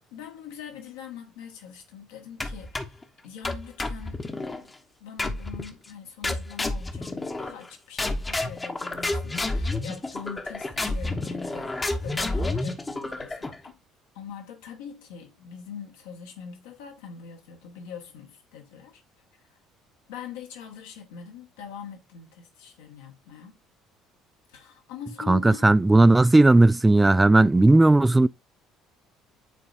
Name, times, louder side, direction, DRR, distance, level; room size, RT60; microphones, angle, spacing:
voice 1, 0.0-4.2 4.5-4.7 5.0-13.8 14.1-19.0 20.1-23.5 24.5-25.7, left 7 dB, 70° left, 1.4 m, -43 dB
sound 1, 2.4-3.0 3.4-4.6 5.2-5.7 6.2-7.7 8.0-13.7, left 2 dB, 20° left, 1.1 m, -30 dB
voice 2, 25.3-28.3, right 2 dB, 15° right, 0.3 m, -16 dB
9.9 x 4.0 x 2.6 m
figure-of-eight pair, 55°, 0 cm